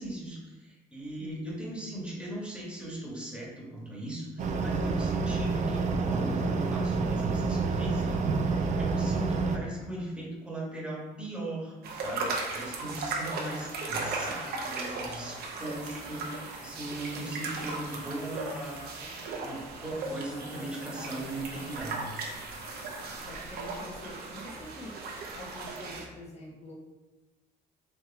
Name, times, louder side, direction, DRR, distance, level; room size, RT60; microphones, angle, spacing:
voice 1, 0.0-18.8 19.4-22.1, right 1 dB, 5° right, -5 dB, 1.5 m, -38 dB
voice 2, 1.2-1.9 13.1-13.5 18.6-19.1 23.3-24.9 25.3-26.7, left 2 dB, 40° left, -3 dB, 1.3 m, -46 dB
sound 1, 4.4-9.6, right 4 dB, 45° right, 0.5 m, -28 dB
sound 2, 11.8-26.1, right 3 dB, 65° right, 0.8 m, -37 dB
sound 3, 15.6-23.2, left 3 dB, 75° left, 1.3 m, -54 dB
4.4 x 3.0 x 3.4 m, 1.1 s
cardioid pair, 110°, 17 cm